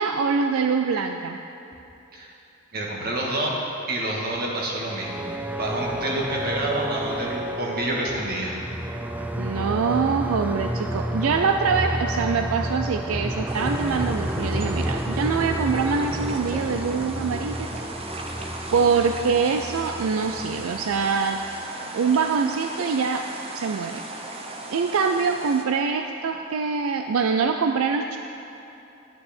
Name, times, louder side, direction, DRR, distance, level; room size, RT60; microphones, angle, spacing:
voice 1, 0.0-1.4 9.4-17.7 18.7-21.4 21.9-23.3 23.5-24.0 24.7-28.2, right 5 dB, 80° right, 6 dB, 0.4 m, -24 dB
voice 2, 2.7-3.5 3.9-5.2 5.5-8.6, right 1 dB, 50° right, -2 dB, 1.7 m, -28 dB
sound 1, 4.8-21.6, right 1 dB, 10° right, 0.4 m, -30 dB
sound 2, 13.5-25.6, right 2 dB, 30° right, 0.8 m, -37 dB
10.5 x 9.5 x 4.3 m, 2.9 s
head